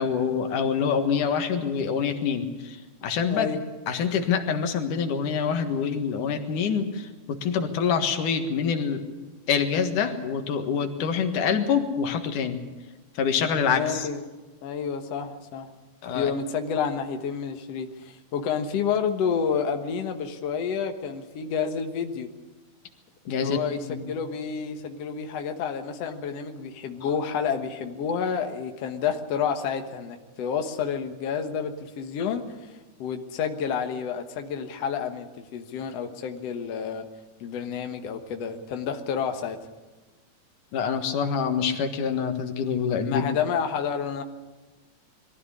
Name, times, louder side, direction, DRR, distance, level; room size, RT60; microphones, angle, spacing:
voice 1, 0.0-3.5 3.9-9.0 9.5-12.6 13.1-14.1 16.0-16.3 23.3-24.0 27.0-27.1 40.7-43.2, left 6 dB, 85° left, 6 dB, 3.2 m, -26 dB
voice 2, 3.3-3.6 13.7-14.2 14.6-15.7 16.1-22.3 23.3-37.1 37.4-39.6 43.0-44.2, left 6 dB, 60° left, 5 dB, 2.2 m, -29 dB
22.5 x 15.0 x 9.9 m, 1.2 s
omnidirectional pair, 3.5 m